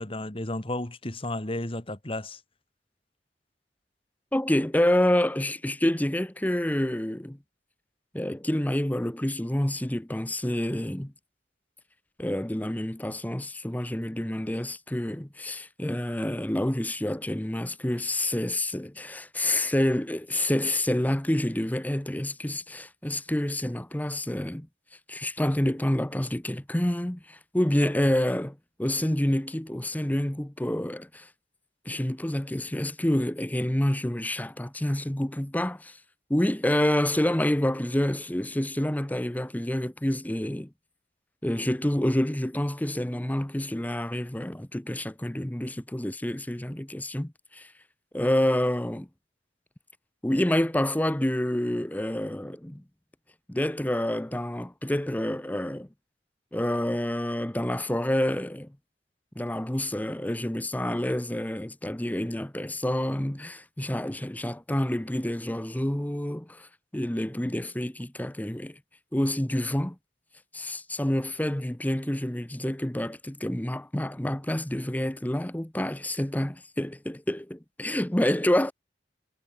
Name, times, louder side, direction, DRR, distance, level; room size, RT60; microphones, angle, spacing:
voice 1, 0.0-2.4, left 1 dB, 30° left, 2.2 m, -33 dB
voice 2, 4.3-7.4 8.1-11.1 12.2-24.7 25.1-31.3 31.9-36.0 36.3-40.7 41.4-47.7 48.1-49.1 50.2-52.8 53.5-55.9 56.5-58.8 59.4-66.7 66.9-68.8 69.1-70.0 70.5-78.7, left 1 dB, 10° left, 0.8 m, -28 dB
head